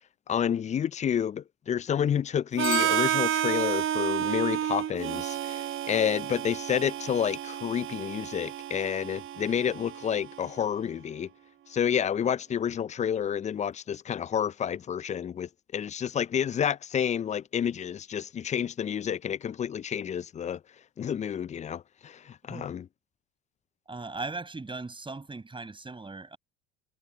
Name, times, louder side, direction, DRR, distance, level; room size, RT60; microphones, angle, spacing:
voice 1, 0.3-11.3 11.7-20.6 21.0-22.9, left 8 dB, 25° left, 0.5 m, -29 dB
Bicycle bell, 2.6-3.9, left 16 dB, 45° left, 0.9 m, -40 dB
Harmonica, 2.6-10.5, right 11 dB, 45° right, 1.2 m, -31 dB
voice 2, 23.9-26.4, right 3 dB, 15° right, 7.7 m, -38 dB
hypercardioid pair, 75°, 30 cm